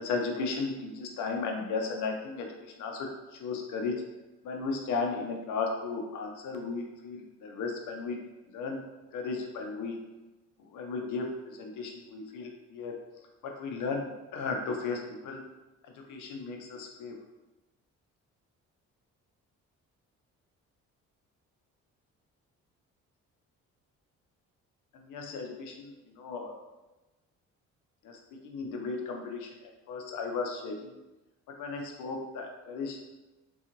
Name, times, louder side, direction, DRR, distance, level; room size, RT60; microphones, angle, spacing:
voice 1, 0.0-4.0 4.4-8.2 8.5-8.8 9.1-10.0 10.6-13.0 13.4-15.4 15.8-17.2 24.9-26.6 28.0-30.9 31.6-33.1, left 4 dB, 85° left, 2 dB, 0.6 m, -35 dB
3.7 x 2.4 x 2.9 m, 1.1 s
cardioid pair, 90°, 30 cm